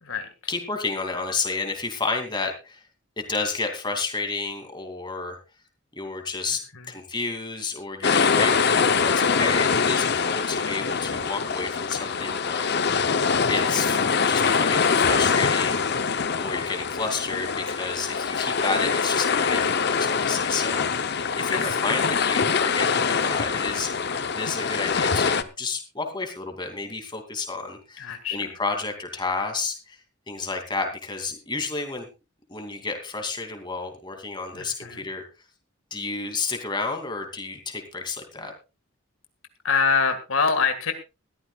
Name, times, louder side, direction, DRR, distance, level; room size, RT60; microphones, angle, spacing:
voice 1, 0.5-2.8 3.2-5.4 5.9-6.6 6.9-13.1 13.5-14.0 14.3-15.8 16.4-21.0 21.3-23.9 24.3-30.0 30.3-32.1 32.5-35.2 35.9-38.5, left 4 dB, 20° left, 4 dB, 2.7 m, -31 dB
sound 1, 8.0-25.4, left 5 dB, 50° left, 0.8 m, -24 dB
voice 2, 21.5-22.0 28.0-28.4 34.5-35.1 39.6-40.9, left 5 dB, 75° left, 7 dB, 1.9 m, -25 dB
20.5 x 14.0 x 2.4 m, 0.28 s
head